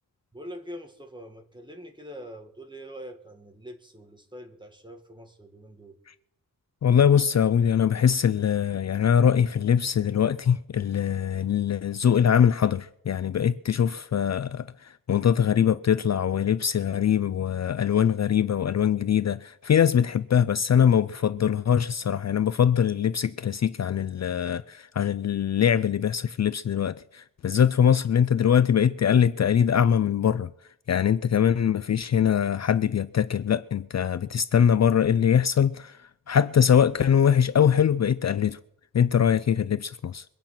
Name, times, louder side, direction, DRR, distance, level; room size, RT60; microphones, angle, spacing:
voice 1, 0.3-6.0, equal, 15° right, 1.8 m, -43 dB
voice 2, 6.8-30.5 30.9-38.6 38.9-40.2, left 8 dB, 50° left, 0.5 m, -22 dB
23.5 x 9.0 x 5.8 m
wide cardioid pair, 140°, 34 cm